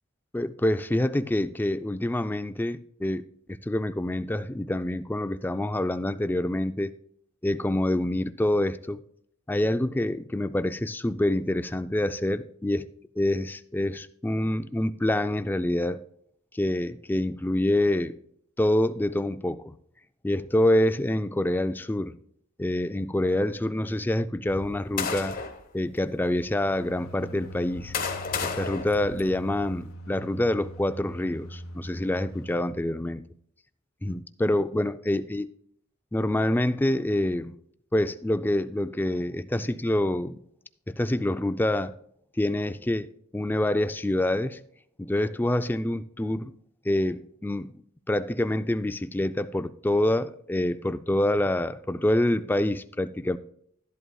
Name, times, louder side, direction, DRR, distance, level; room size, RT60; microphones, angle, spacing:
voice 1, 0.3-3.2 3.6-6.9 7.4-9.0 9.5-12.9 13.2-16.0 16.5-18.1 18.6-19.8 20.2-22.2 22.6-25.4 25.7-27.9 28.4-33.2 34.0-35.5 36.1-37.6 37.9-40.4 40.9-41.9 42.4-44.6 45.0-46.5 46.8-47.8 48.1-53.4, left 1 dB, 10° left, 0.3 m, -26 dB
sound 1, 24.5-25.6 26.4-26.5 27.4-29.8, left 5 dB, 45° left, 1.1 m, -33 dB
sound 2, 26.7-32.7, right 1 dB, 80° left, 1.0 m, -42 dB
12.5 x 11.0 x 2.3 m
head